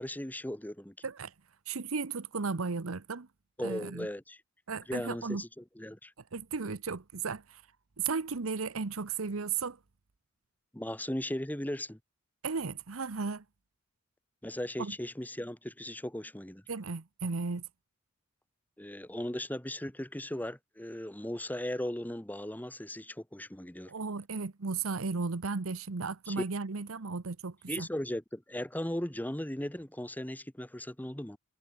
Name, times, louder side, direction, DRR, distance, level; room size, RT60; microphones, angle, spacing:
voice 1, 0.0-0.9 3.6-4.4 4.9-6.1 10.7-12.0 14.4-16.6 18.8-23.9 26.3-26.4 27.7-31.4, left 1 dB, 10° left, 1.4 m, -37 dB
voice 2, 1.7-3.3 3.6-4.1 4.7-5.4 6.3-7.6 8.0-9.8 12.4-13.4 14.8-14.9 16.7-17.6 23.9-27.9, right 4 dB, 90° right, 0.9 m, -35 dB
head